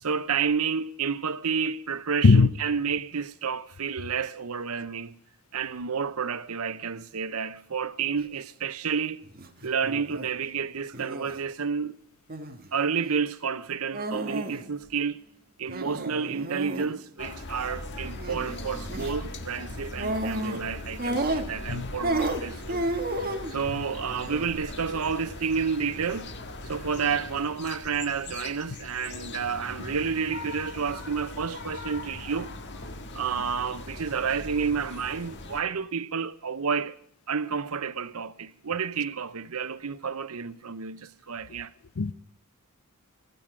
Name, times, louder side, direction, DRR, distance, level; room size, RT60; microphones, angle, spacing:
voice 1, 0.0-5.2 5.5-9.2 9.6-12.0 12.7-15.3 15.6-22.9 23.5-26.3 26.6-32.5 33.1-37.0 37.3-41.7, right 6 dB, 80° right, 0.8 m, -30 dB
voice 2, 2.2-2.5 21.7-21.9 42.0-42.1, left 4 dB, 70° left, 0.6 m, -18 dB
sound 1, 9.2-9.5 9.8-10.3 10.9-11.4 12.3-12.7 13.9-14.6 14.9-15.0 15.7-16.9 18.2-18.5 18.9-19.1 20.0-20.6 21.0-21.7 22.0-23.5 24.1-24.5, right 2 dB, 45° right, 1.5 m, -31 dB
sound 2, 17.2-35.6, left 2 dB, 55° left, 1.6 m, -40 dB
16.5 x 14.5 x 5.0 m
head